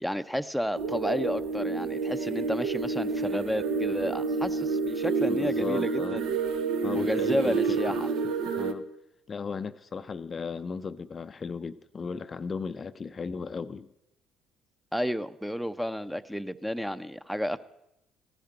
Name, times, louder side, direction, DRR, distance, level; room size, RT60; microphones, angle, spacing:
voice 1, 0.0-6.4 6.9-8.1 14.9-17.6, equal, ahead, 12 dB, 0.7 m, -31 dB
sound 1, 0.7-8.7, right 4 dB, 65° right, 1.0 m, -29 dB
voice 2, 5.3-6.2 6.8-7.8 8.5-8.9 9.3-13.9, left 5 dB, 35° left, 11 dB, 0.5 m, -36 dB
15.0 x 10.0 x 7.8 m, 0.85 s
figure-of-eight pair, 50°, 0 cm